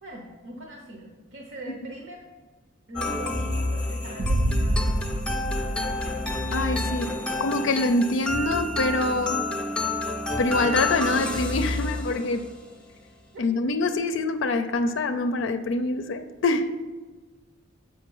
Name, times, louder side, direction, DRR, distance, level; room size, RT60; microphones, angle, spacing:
voice 1, 0.0-2.2 2.9-5.2 7.2-7.3 13.6-13.7, right 1 dB, 65° right, 0.9 m, -41 dB
sound 1, 3.0-12.6, left 2 dB, 5° left, 0.5 m, -29 dB
sound 2, 4.2-7.2, right 1 dB, 45° right, 0.5 m, -28 dB
voice 2, 6.5-9.4 10.4-12.5 13.4-16.9, left 2 dB, 65° left, 0.4 m, -25 dB
7.3 x 5.6 x 5.4 m
head